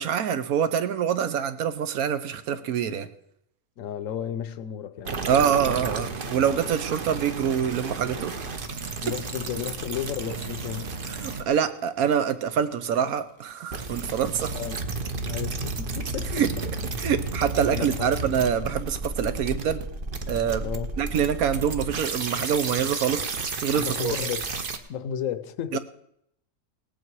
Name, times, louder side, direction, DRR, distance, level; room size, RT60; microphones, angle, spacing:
voice 1, 0.0-3.1 5.3-8.5 11.2-14.5 16.3-16.5 17.0-19.8 20.3-20.7 21.0-24.1 25.7-25.8, right 8 dB, 75° right, 1.3 m, -25 dB
voice 2, 3.8-5.2 9.0-10.9 14.5-14.8 15.2-16.4 17.7-18.1 20.6-20.9 23.7-24.5 24.9-25.8, left 9 dB, 65° left, 1.1 m, -33 dB
sound 1, 5.1-11.6 12.7-12.8 13.5-24.8, right 3 dB, 40° right, 1.0 m, -32 dB
18.5 x 8.8 x 4.7 m
omnidirectional pair, 1.5 m